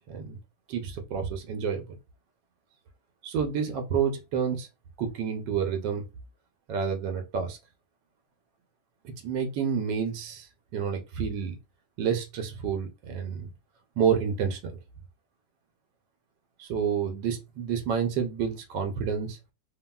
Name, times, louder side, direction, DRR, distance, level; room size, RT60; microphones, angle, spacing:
voice 1, 0.1-0.4 0.7-1.9 3.2-4.7 5.0-6.0 6.7-7.6 9.2-11.6 12.0-13.5 14.0-14.6 16.6-19.4, right 7 dB, 90° right, 1.3 m, -29 dB
3.3 x 2.3 x 2.2 m
omnidirectional pair, 1.9 m